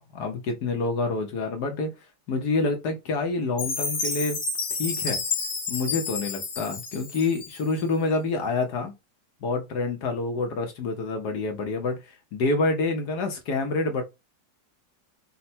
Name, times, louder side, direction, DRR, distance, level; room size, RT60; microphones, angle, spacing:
voice 1, 0.1-1.9 2.3-4.4 4.8-5.2 5.7-8.9 9.4-14.0, left 3 dB, 65° left, 1.4 m, -27 dB
Chime, 3.6-7.8, left 4 dB, 45° left, 1.2 m, -30 dB
5.4 x 2.2 x 4.2 m
omnidirectional pair, 1.9 m